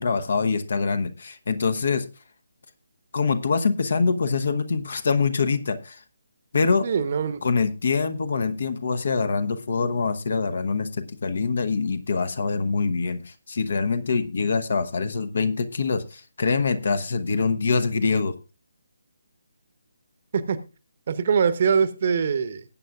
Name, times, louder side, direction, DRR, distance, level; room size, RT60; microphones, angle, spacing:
voice 1, 0.0-2.0 3.1-6.0 6.5-6.9 7.4-18.3, left 4 dB, 50° left, 11 dB, 1.1 m, -24 dB
voice 2, 6.8-7.4 20.3-20.6 21.1-22.6, right 6 dB, 40° right, 13 dB, 1.0 m, -23 dB
19.5 x 8.6 x 2.4 m, 0.32 s
figure-of-eight pair, 145°, 0 cm